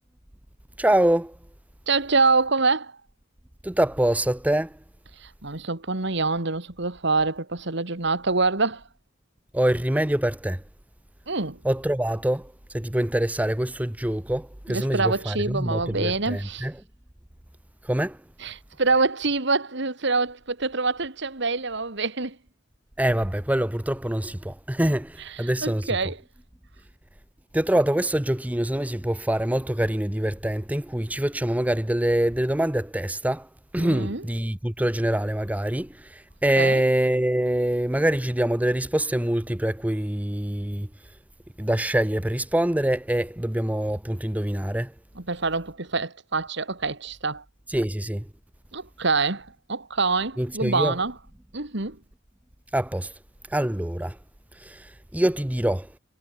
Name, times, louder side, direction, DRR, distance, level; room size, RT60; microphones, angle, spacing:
voice 1, 0.8-1.4 3.6-4.7 9.5-10.6 11.6-16.7 17.8-18.2 23.0-25.9 27.5-33.5 33.7-40.9 41.6-44.9 47.7-48.2 50.4-51.0 52.7-53.1 53.5-54.2 54.6-55.9, right 1 dB, 10° right, 0.7 m, -25 dB
voice 2, 1.9-2.9 5.2-8.8 11.3-11.6 14.7-16.7 18.4-22.4 25.3-26.2 33.8-34.2 36.6-36.8 45.2-47.4 48.7-51.1 51.5-52.0, right 3 dB, 65° right, 2.5 m, -25 dB
head